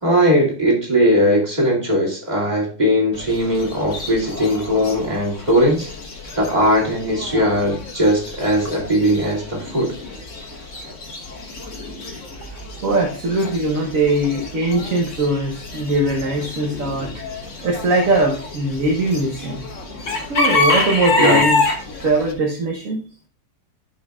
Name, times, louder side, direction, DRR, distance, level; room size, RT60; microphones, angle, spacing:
voice 1, 0.0-5.9 6.4-9.9 21.2-21.4, equal, 20° right, -3 dB, 2.5 m, -19 dB
Chicken rooster / Bird, 3.1-22.3, left 2 dB, 45° left, 1.6 m, -27 dB
voice 2, 12.8-17.1 17.6-19.6 20.3-21.7 22.0-23.0, right 2 dB, 50° right, 0 dB, 1.4 m, -20 dB
11.5 x 5.4 x 2.4 m, 0.39 s
omnidirectional pair, 2.0 m